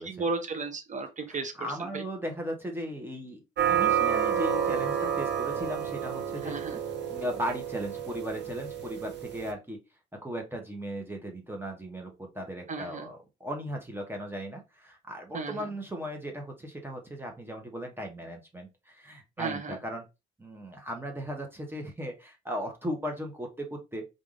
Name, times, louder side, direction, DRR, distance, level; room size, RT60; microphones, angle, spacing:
voice 1, 0.0-2.0 6.4-6.8 12.7-13.1 15.3-15.7 19.4-19.8, right 4 dB, 40° right, 0.8 m, -34 dB
voice 2, 1.3-3.4 3.7-6.6 7.1-9.8 10.2-20.0 20.4-24.1, equal, 10° right, 1.1 m, -37 dB
sound 1, 3.6-9.5, right 8 dB, 60° right, 0.9 m, -30 dB
3.4 x 2.6 x 3.7 m
cardioid pair, 90°, 20 cm